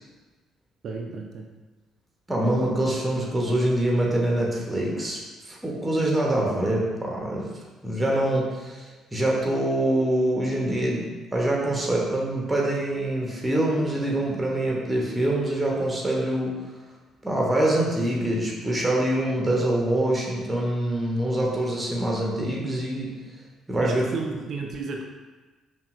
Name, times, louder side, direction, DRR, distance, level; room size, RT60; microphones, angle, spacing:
voice 1, 0.8-1.5 23.8-25.0, right 4 dB, 50° right, 1 dB, 0.4 m, -33 dB
voice 2, 2.3-5.2 5.5-7.5 7.8-16.6 17.2-23.2 23.7-24.0, right 1 dB, 15° right, -2 dB, 0.9 m, -25 dB
5.4 x 2.3 x 2.5 m, 1.3 s
figure-of-eight pair, 45°, 0 cm